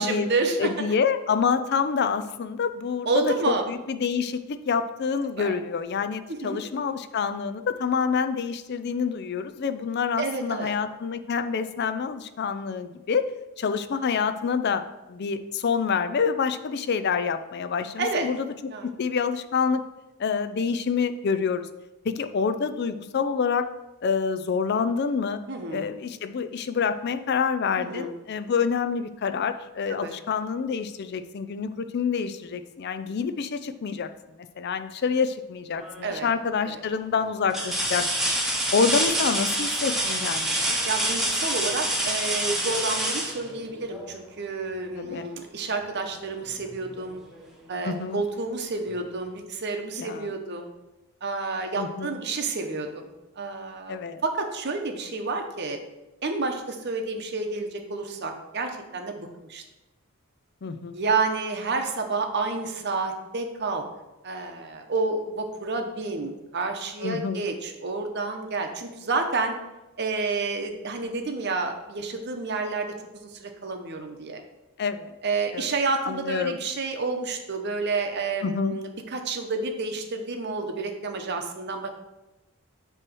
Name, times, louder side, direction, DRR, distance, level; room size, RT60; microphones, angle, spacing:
voice 1, 0.0-0.9 3.1-3.7 5.4-5.6 6.4-6.6 10.2-10.7 18.0-18.3 18.7-18.9 25.5-25.9 27.8-28.1 29.9-30.1 36.0-36.3 36.6-36.8 40.8-47.2 47.7-50.7 51.2-53.1 53.4-54.0 54.2-55.8 56.2-59.6 60.9-63.8 64.2-69.5 70.0-72.9 73.2-74.4 75.2-81.9, right 3 dB, 50° right, 5 dB, 0.8 m, -29 dB
voice 2, 0.6-13.3 13.6-14.8 15.1-18.5 18.8-19.8 20.2-21.7 22.0-23.7 24.0-25.4 25.7-34.1 34.6-38.3 38.7-40.8 44.9-45.3 47.8-48.2 50.0-50.3 51.8-52.2 53.9-54.2 60.6-61.0 67.0-67.4 74.8-75.1 75.5-75.7 76.0-76.6 78.4-78.7, left 6 dB, 50° left, 10 dB, 0.4 m, -27 dB
sound 1, 35.7-36.2 36.8-36.9 37.5-44.2 46.0-46.1 46.6-47.6 48.9-49.0, right 1 dB, ahead, 1.0 m, -27 dB
7.7 x 3.1 x 6.1 m, 1.0 s
head